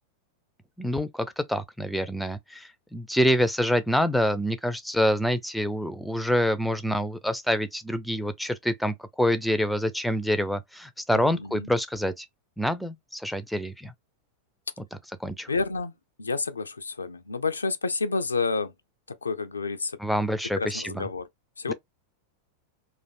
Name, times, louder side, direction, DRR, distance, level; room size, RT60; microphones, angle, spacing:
voice 1, 0.8-12.3 12.6-13.9 15.2-15.5 20.0-21.1 21.7-21.8, equal, ahead, 0.4 m, -26 dB
voice 2, 11.2-11.7 15.5-15.9 16.2-18.7 19.2-20.0 20.6-21.2 21.6-21.7, left 4 dB, 75° left, 0.4 m, -29 dB
3.2 x 2.5 x 2.3 m
figure-of-eight pair, 90°, 0 cm